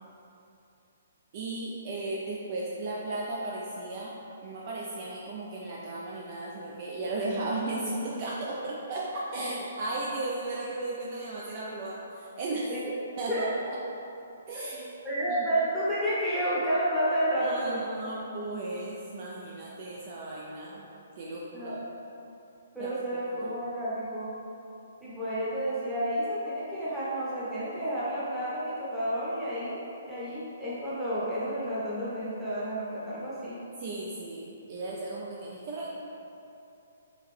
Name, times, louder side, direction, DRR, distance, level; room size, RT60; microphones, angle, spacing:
voice 1, 1.3-4.1 4.4-12.7 13.2-13.5 14.5-14.9 15.3-15.4 17.4-20.9 21.2-21.8 22.8-23.6 33.8-35.9, right 2 dB, 35° right, -4 dB, 0.3 m, -35 dB
voice 2, 15.0-17.8 21.5-21.8 22.7-24.3 25.0-29.8 30.1-33.6, right 1 dB, 5° right, -11 dB, 0.8 m, -30 dB
3.8 x 3.0 x 3.2 m, 2.8 s
hypercardioid pair, 165°, 0 cm